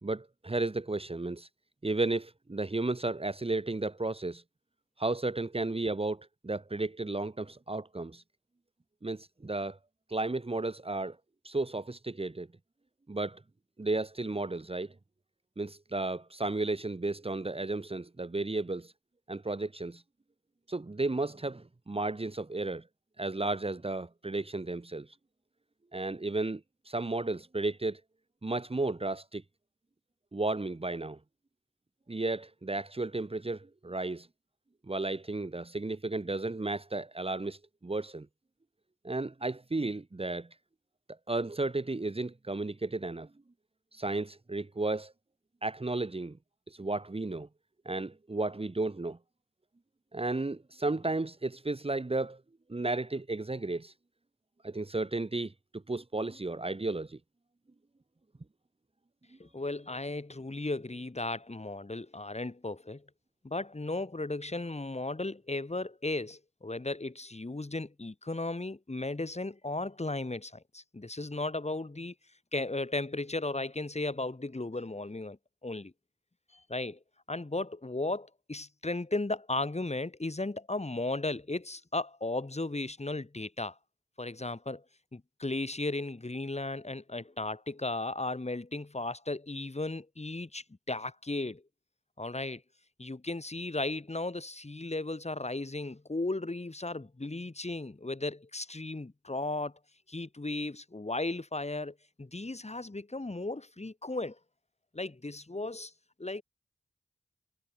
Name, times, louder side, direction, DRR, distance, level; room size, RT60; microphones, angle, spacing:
voice 1, 0.0-1.5 1.8-4.4 5.0-8.2 9.0-9.8 10.1-11.2 11.4-12.5 13.1-13.4 13.8-14.9 15.6-18.9 19.3-20.0 20.7-22.8 23.2-25.1 25.9-26.6 26.9-28.0 28.4-29.4 30.3-31.2 32.1-34.3 34.9-38.3 39.0-40.5 41.3-43.3 43.9-45.1 45.6-46.4 46.8-47.5 47.8-49.2 50.1-52.4 52.7-53.9 54.6-55.5 55.9-57.2, right 2 dB, 30° right, 1.5 m, -33 dB
voice 2, 59.4-63.0 63.4-72.1 72.5-75.9 76.5-77.0 77.3-83.8 84.2-84.8 85.1-91.6 92.2-92.6 93.0-99.7 100.1-104.4 104.9-105.9 106.2-106.4, left 2 dB, 35° left, 6.0 m, -35 dB
cardioid pair, 55°, 20 cm